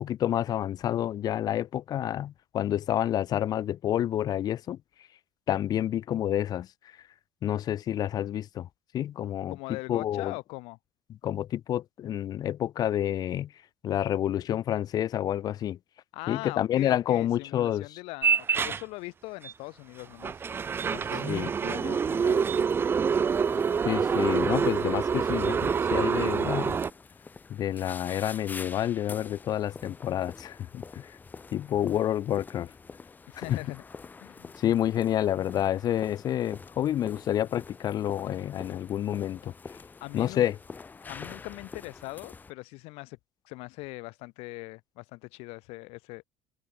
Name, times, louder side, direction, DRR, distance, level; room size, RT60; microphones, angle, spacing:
voice 1, 0.0-4.8 5.5-6.7 7.4-8.7 8.9-9.5 9.9-10.3 11.2-13.5 13.8-15.8 16.3-17.8 21.3-21.5 23.8-26.8 27.5-31.0 31.5-32.7 33.5-33.6 34.6-39.5 40.1-40.5, left 11 dB, 40° left, 1.5 m, -28 dB
voice 2, 9.5-10.8 16.1-20.4 20.8-22.7 33.3-33.8 34.2-34.5 40.0-40.5 41.0-43.2 43.4-46.2, left 25 dB, 80° left, 3.6 m, -41 dB
sound 1, 18.2-18.8 19.4-19.5 20.2-26.9, right 6 dB, 20° right, 1.0 m, -26 dB
sound 2, 23.3-42.5, left 4 dB, 15° left, 4.4 m, -46 dB
cardioid pair, 160°, 10 cm